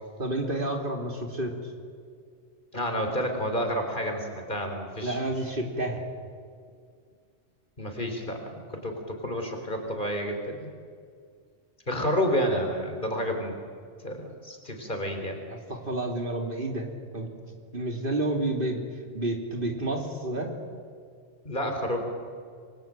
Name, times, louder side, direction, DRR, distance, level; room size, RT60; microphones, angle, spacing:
voice 1, 0.2-1.7 5.0-6.0 15.5-17.3 17.7-18.8 19.1-20.5, right 1 dB, 45° right, 2 dB, 3.4 m, -30 dB
voice 2, 2.7-5.2 7.8-10.7 11.9-13.5 14.0-15.4 21.4-22.0, equal, 45° left, 4 dB, 4.3 m, -30 dB
27.5 x 23.0 x 9.0 m, 2.1 s
omnidirectional pair, 1.2 m